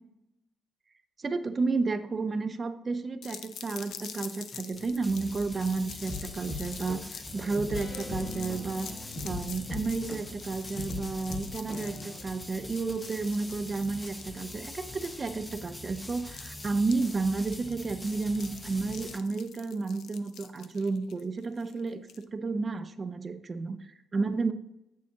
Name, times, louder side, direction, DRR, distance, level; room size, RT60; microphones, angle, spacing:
voice 1, 1.2-8.9 9.2-24.5, right 3 dB, 35° right, 9 dB, 0.5 m, -32 dB
sound 1, 3.2-22.2, left 8 dB, 80° left, 0.5 m, -47 dB
sound 2, 3.5-19.2, left 1 dB, 15° left, 0.6 m, -44 dB
sound 3, 6.1-12.2, left 2 dB, 35° left, 1.7 m, -40 dB
7.3 x 6.5 x 2.8 m, 0.88 s
cardioid pair, 110°, 0 cm